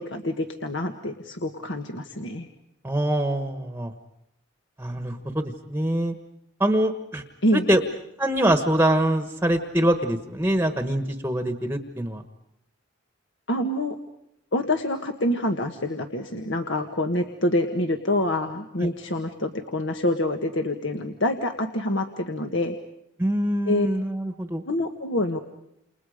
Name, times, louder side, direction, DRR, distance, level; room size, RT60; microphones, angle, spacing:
voice 1, 0.0-2.5 7.4-7.7 13.5-14.0 14.5-22.8 23.7-23.9 24.7-25.4, left 1 dB, 60° left, 5 dB, 1.6 m, -26 dB
voice 2, 2.8-3.9 4.8-6.1 6.6-7.2 7.5-7.8 8.2-12.2 18.8-18.9 23.2-24.6, right 1 dB, 10° right, 6 dB, 1.3 m, -24 dB
30.0 x 29.0 x 5.1 m, 0.78 s
head